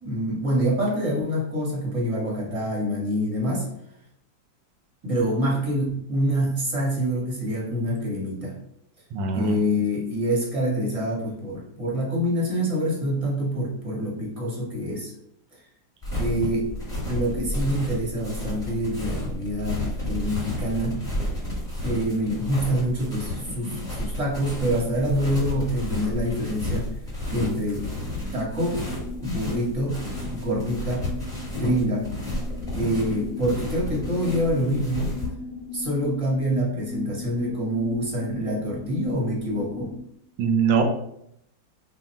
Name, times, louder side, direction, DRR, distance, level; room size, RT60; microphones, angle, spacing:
voice 1, 0.0-3.7 5.0-8.6 9.3-15.1 16.1-16.7 17.1-21.0 21.8-26.9 27.3-27.9 28.3-28.8 29.2-31.1 31.5-32.1 32.7-35.2 35.7-39.9, equal, 30° right, -3 dB, 0.6 m, -26 dB
voice 2, 9.1-9.6 40.4-40.8, right 6 dB, 90° right, 3 dB, 1.4 m, -22 dB
sound 1, 16.0-35.3, left 1 dB, 5° left, 0.9 m, -32 dB
sound 2, 28.5-40.0, left 2 dB, 85° left, 0.6 m, -38 dB
3.5 x 2.2 x 4.2 m, 0.74 s
omnidirectional pair, 2.0 m